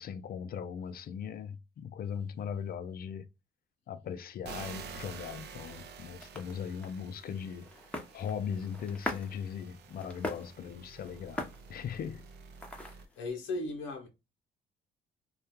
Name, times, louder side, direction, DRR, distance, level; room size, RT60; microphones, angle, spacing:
voice 1, 0.0-3.3 3.9-7.7 8.1-11.4 11.7-12.2 12.8-12.9, left 7 dB, 50° left, 0.4 m, -39 dB
sound 1, 4.4-13.1, right 6 dB, 60° right, 0.4 m, -49 dB
sound 2, 5.1-13.2, left 1 dB, 5° left, 0.6 m, -44 dB
voice 2, 13.2-14.1, left 2 dB, 80° left, 0.7 m, -36 dB
2.3 x 2.1 x 2.9 m
supercardioid pair, 65°, 20 cm